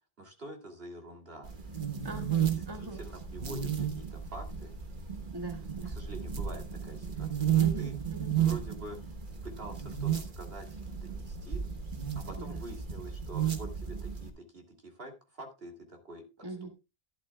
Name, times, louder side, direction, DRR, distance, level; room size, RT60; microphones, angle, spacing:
voice 1, 0.2-1.5 2.0-4.7 5.8-7.9 8.4-9.0 9.4-11.6 12.1-16.2, right 1 dB, 70° right, 3 dB, 3.0 m, -46 dB
sound 1, 1.4-14.3, right 9 dB, 50° right, 1.4 m, -33 dB
voice 2, 2.0-3.0 5.3-6.0 7.6-8.4 12.4-12.6 16.4-16.7, right 2 dB, 20° right, 4 dB, 1.9 m, -41 dB
12.0 x 11.5 x 2.3 m, 0.25 s
omnidirectional pair, 1.1 m